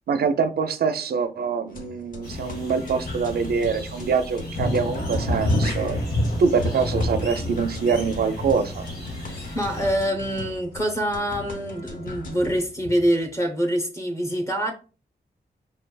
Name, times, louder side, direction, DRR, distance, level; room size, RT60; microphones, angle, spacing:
voice 1, 0.1-6.0 6.4-8.9, right 5 dB, 65° right, 0.4 m, -24 dB
sound 1, 1.7-12.6, left 3 dB, 50° left, 0.7 m, -39 dB
sound 2, 2.2-10.0, equal, 70° left, 1.8 m, -37 dB
Thunder, 4.5-11.0 11.3-11.9 12.4-13.2, left 1 dB, 90° left, 1.2 m, -28 dB
voice 2, 9.3-14.7, equal, 15° left, 0.8 m, -25 dB
5.5 x 3.2 x 2.2 m
wide cardioid pair, 180°, 17 cm